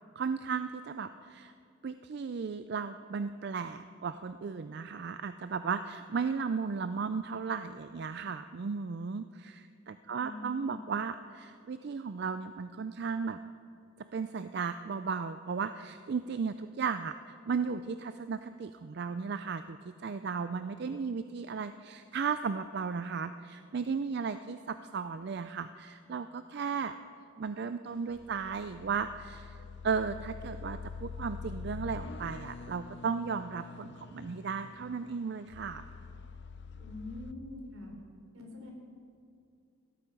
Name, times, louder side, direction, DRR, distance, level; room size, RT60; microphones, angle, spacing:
voice 1, 0.2-1.5 1.8-13.4 14.1-26.9 27.4-29.6 29.8-35.9, right 5 dB, 50° right, 11 dB, 0.4 m, -35 dB
voice 2, 10.1-10.9 36.8-37.9 38.3-38.7, left 2 dB, 75° right, 1 dB, 3.5 m, -44 dB
sound 1, 27.9-37.3, left 4 dB, 50° left, 0.5 m, -45 dB
17.5 x 13.0 x 5.3 m, 2.4 s
head